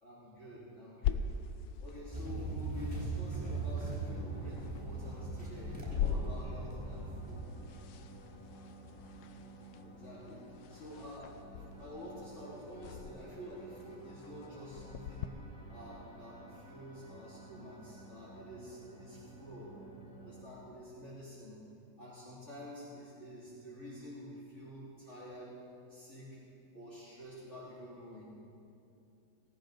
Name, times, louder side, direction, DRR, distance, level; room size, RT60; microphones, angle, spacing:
voice 1, 0.0-1.3 1.8-7.4 9.8-11.4 11.8-15.4 15.7-19.7 20.2-21.6 22.0-25.6 25.9-26.4 26.7-28.3, equal, 40° left, -9 dB, 3.0 m, -49 dB
sound 1, 1.0-15.3, left 7 dB, 70° left, 1.0 m, -42 dB
sound 2, 2.1-7.4, right 3 dB, 5° right, 3.4 m, -39 dB
sound 3, 4.1-20.4, right 2 dB, 15° left, 1.5 m, -54 dB
18.5 x 17.5 x 3.9 m, 2.7 s
omnidirectional pair, 1.9 m